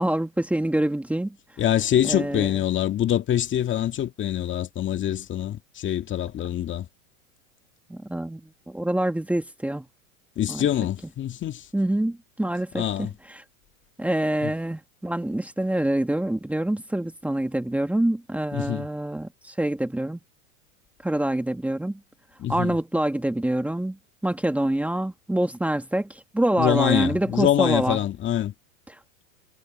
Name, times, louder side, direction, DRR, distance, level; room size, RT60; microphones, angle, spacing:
voice 1, 0.0-1.4 2.0-2.5 7.9-9.8 10.5-10.7 11.7-13.4 14.0-20.2 21.0-22.0 22.5-24.0 24.2-28.0, right 1 dB, 5° right, 2.1 m, -26 dB
voice 2, 1.6-6.9 10.4-11.7 12.7-13.1 14.4-14.5 18.5-18.8 22.4-22.7 26.6-28.5, left 11 dB, 30° left, 2.2 m, -25 dB
hypercardioid pair, 120°, 41 cm